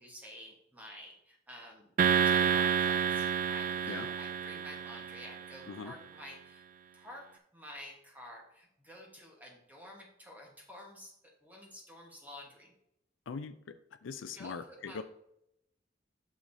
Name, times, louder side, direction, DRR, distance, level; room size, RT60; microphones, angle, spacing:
voice 1, 0.0-1.9 2.2-6.6 6.9-7.2 7.5-11.1 11.4-12.7 14.3-15.0, left 1 dB, 10° right, -1 dB, 1.2 m, -50 dB
sound 1, 2.0-5.5, right 7 dB, 45° right, 0.3 m, -29 dB
voice 2, 13.3-15.0, left 5 dB, 85° left, 11 dB, 0.4 m, -42 dB
9.0 x 6.3 x 2.7 m, 0.81 s
head